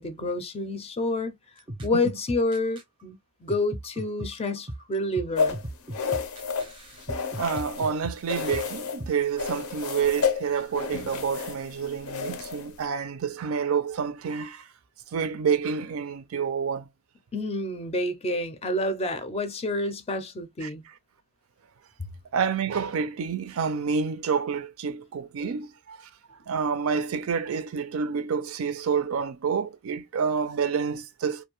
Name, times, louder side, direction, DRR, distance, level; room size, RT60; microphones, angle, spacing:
voice 1, 0.0-1.3 1.8-5.6 17.3-20.8 25.4-25.5, left 2 dB, 30° left, 0.4 m, -29 dB
sound 1, 1.6-2.8 3.5-9.1, right 1 dB, 25° right, 0.5 m, -37 dB
sound 2, 5.4-7.9 8.3-9.0 9.4-12.8, left 5 dB, 85° left, 0.5 m, -30 dB
voice 2, 7.3-14.7 15.1-16.9 20.6-20.7 22.3-26.1 26.5-31.4, right 6 dB, 80° right, 0.4 m, -28 dB
2.5 x 2.1 x 2.9 m
head